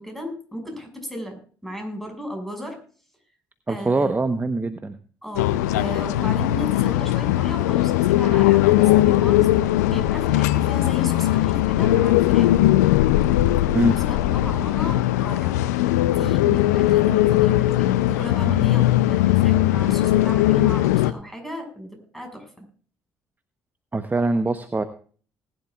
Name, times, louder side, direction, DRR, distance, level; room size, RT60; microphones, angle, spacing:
voice 1, 0.0-2.8 3.7-4.2 5.2-12.5 13.8-15.6 16.1-22.7, equal, ahead, 4 dB, 6.1 m, -35 dB
voice 2, 3.7-5.0 13.7-14.0 23.9-24.8, right 3 dB, 20° right, 10 dB, 1.0 m, -23 dB
sound 1, 5.4-21.1, left 15 dB, 85° left, 0.6 m, -19 dB
19.5 x 11.0 x 2.4 m, 0.43 s
hypercardioid pair, 50°, 9 cm